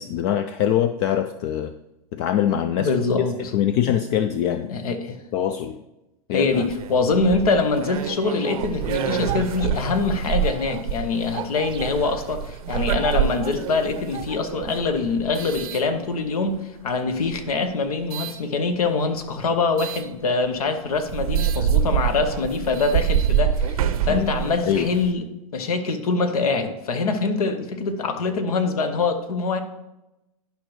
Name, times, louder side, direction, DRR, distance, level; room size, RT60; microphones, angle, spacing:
voice 1, 0.0-1.7 2.1-2.9 3.5-4.8 5.3-5.8 6.3-6.5 24.1-24.4 24.6-24.9, left 10 dB, 50° left, 10 dB, 0.4 m, -23 dB
voice 2, 2.8-3.4 4.5-5.2 6.3-25.3 25.5-29.6, left 4 dB, 75° left, 9 dB, 1.0 m, -24 dB
sound 1, 6.5-16.5 17.2-18.4 19.8-20.1 20.6-20.7 21.0-25.1, right 9 dB, 70° right, 0.6 m, -27 dB
sound 2, 8.0-14.4, right 11 dB, 25° right, 0.5 m, -38 dB
11.5 x 5.1 x 3.1 m, 0.94 s
hypercardioid pair, 100°, 19 cm